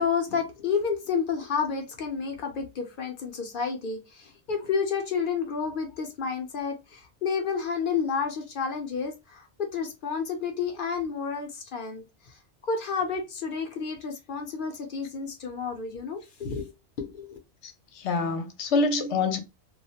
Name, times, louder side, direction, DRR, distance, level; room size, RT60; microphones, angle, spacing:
voice 1, 0.0-16.7 17.0-17.4, left 6 dB, 55° left, 0.7 m, -30 dB
voice 2, 17.6-19.4, left 3 dB, 85° left, 0.9 m, -26 dB
2.3 x 2.1 x 2.7 m
omnidirectional pair, 1.1 m